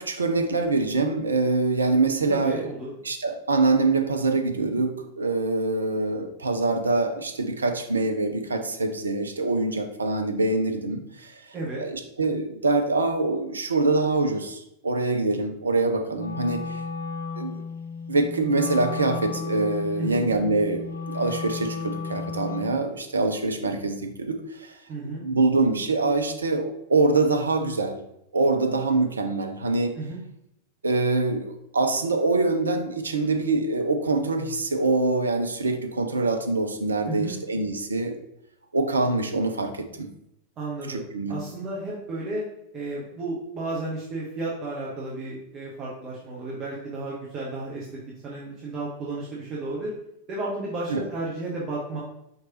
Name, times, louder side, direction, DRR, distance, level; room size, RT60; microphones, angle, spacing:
voice 1, 0.0-2.6 3.0-16.8 17.4-17.6 18.1-28.0 28.3-30.0 30.8-38.2 38.7-40.1 40.9-41.4 50.9-51.0, right 3 dB, 75° right, 5 dB, 0.5 m, -25 dB
voice 2, 2.3-2.9 11.5-11.8 20.0-20.3 24.9-25.3 30.0-30.2 37.1-37.4 40.6-41.0 41.3-42.4 42.7-47.9 48.2-49.9 50.3-52.0, right 2 dB, 30° right, -5 dB, 1.1 m, -33 dB
Wind instrument woodwind instrument, 16.1-22.8, left 4 dB, 70° left, 0.6 m, -34 dB
5.1 x 3.1 x 3.0 m, 0.80 s
figure-of-eight pair, 90°, 0 cm